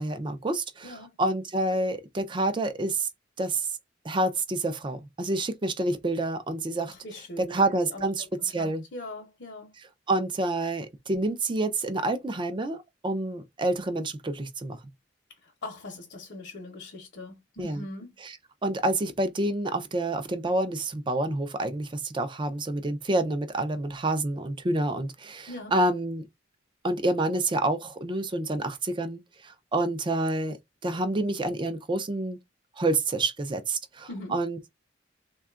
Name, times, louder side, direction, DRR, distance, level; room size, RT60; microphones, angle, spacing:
voice 1, 0.0-3.1 3.4-3.7 4.0-6.9 7.5-8.2 8.5-8.8 10.1-14.8 17.6-17.8 18.2-18.3 18.6-26.2 26.8-30.6 30.8-32.4 32.8-34.7, right 2 dB, 25° right, 0.4 m, -28 dB
voice 2, 0.8-1.2 6.9-7.6 7.9-9.7 15.4-18.1 25.5-25.8 34.1-34.4, left 2 dB, 60° left, 0.8 m, -41 dB
3.6 x 2.3 x 2.3 m
head